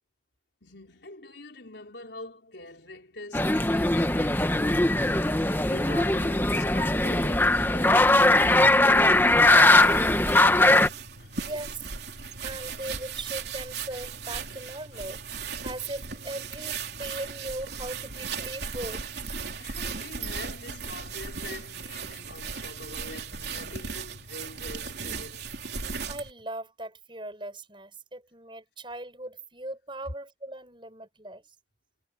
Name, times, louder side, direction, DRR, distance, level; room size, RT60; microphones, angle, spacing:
voice 1, 0.6-5.0 5.7-8.2 11.2-11.5 12.4-12.6 14.9-15.0 17.0-17.2 19.6-25.5, left 2 dB, 75° left, 4.3 m, -44 dB
sound 1, 3.3-10.9, left 2 dB, 10° left, 1.1 m, -20 dB
voice 2, 9.4-10.2 11.4-11.8 12.4-15.2 15.6-19.1 26.1-31.4, right 1 dB, 25° right, 6.3 m, -38 dB
sound 2, 9.8-26.3, right 5 dB, 65° right, 3.4 m, -37 dB
head